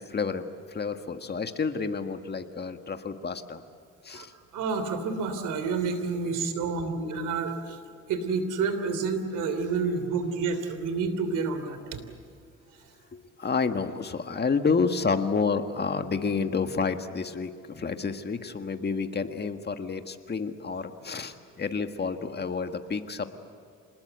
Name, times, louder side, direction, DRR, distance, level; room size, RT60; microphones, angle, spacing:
voice 1, 0.0-3.6 4.0-4.3 13.1-23.3, left 5 dB, 35° left, 7 dB, 1.7 m, -29 dB
voice 2, 4.5-7.8 8.1-12.0, right 4 dB, 90° right, 9 dB, 3.2 m, -29 dB
27.0 x 20.5 x 8.1 m, 2.4 s
cardioid pair, 90°, 30 cm